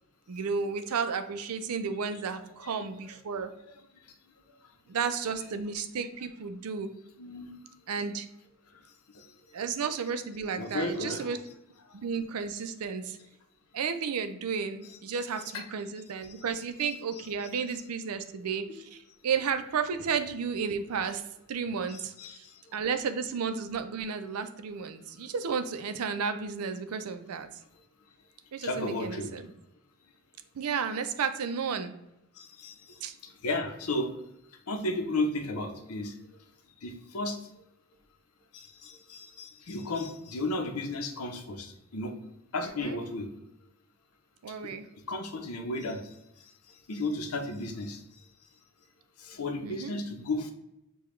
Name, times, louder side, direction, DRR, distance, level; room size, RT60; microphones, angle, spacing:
voice 1, 0.3-3.5 4.9-6.9 7.9-8.3 9.5-11.4 11.9-13.2 13.7-21.2 21.5-22.4 22.7-27.5 28.5-29.5 30.5-31.9 33.0-33.2 42.6-43.0 44.4-44.9 49.6-50.0, right 6 dB, 90° right, 9 dB, 0.5 m, -33 dB
voice 2, 7.2-7.6 9.1-9.2 10.6-11.3 15.5-15.6 18.7-18.8 21.9-22.6 28.6-29.3 32.4-34.1 34.7-36.1 36.8-37.4 38.5-42.2 42.5-43.3 44.6-44.7 45.1-46.0 46.9-48.0 49.2-50.5, left 2 dB, 85° left, 5 dB, 0.7 m, -34 dB
6.8 x 2.3 x 3.1 m, 0.87 s
head